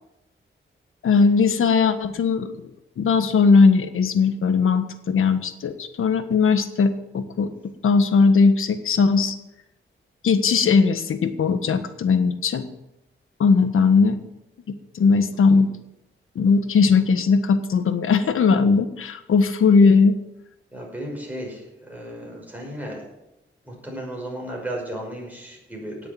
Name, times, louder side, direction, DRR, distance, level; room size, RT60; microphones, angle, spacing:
voice 1, 1.0-7.5 7.8-9.3 10.2-12.6 13.4-14.2 14.7-15.7 16.3-20.1, left 5 dB, 85° left, 9 dB, 1.4 m, -19 dB
voice 2, 20.7-23.0 23.6-26.1, right 1 dB, 10° right, -2 dB, 5.9 m, -34 dB
17.5 x 6.9 x 9.1 m, 0.90 s
wide cardioid pair, 140°, 21 cm